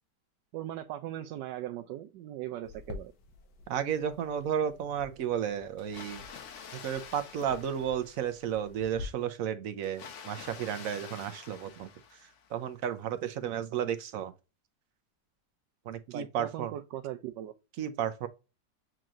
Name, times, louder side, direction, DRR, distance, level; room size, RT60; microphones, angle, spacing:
voice 1, 0.5-3.1 16.1-17.5, right 12 dB, 90° right, 1.2 m, -39 dB
sound 1, 2.6-9.0, left 3 dB, 80° left, 1.5 m, -49 dB
voice 2, 3.7-6.2 6.7-11.9 12.2-14.3 15.8-16.7 17.8-18.3, right 9 dB, 65° right, 0.9 m, -33 dB
Water, 5.8-8.6 9.8-12.6, left 7 dB, 55° left, 0.9 m, -48 dB
7.5 x 2.9 x 2.4 m
omnidirectional pair, 1.8 m